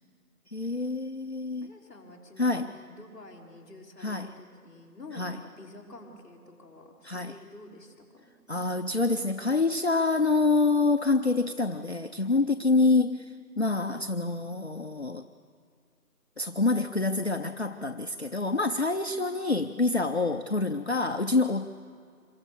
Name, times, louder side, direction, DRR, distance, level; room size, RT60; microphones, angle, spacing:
voice 1, 0.5-1.7 2.4-2.7 4.0-4.3 5.1-5.4 7.0-7.4 8.5-13.2 13.6-15.2 16.4-21.6, left 3 dB, 45° left, 6 dB, 0.5 m, -26 dB
voice 2, 1.6-8.3 19.1-19.2, left 2 dB, 5° left, -15 dB, 3.1 m, -49 dB
27.0 x 23.0 x 6.8 m, 2.3 s
figure-of-eight pair, 175°, 47 cm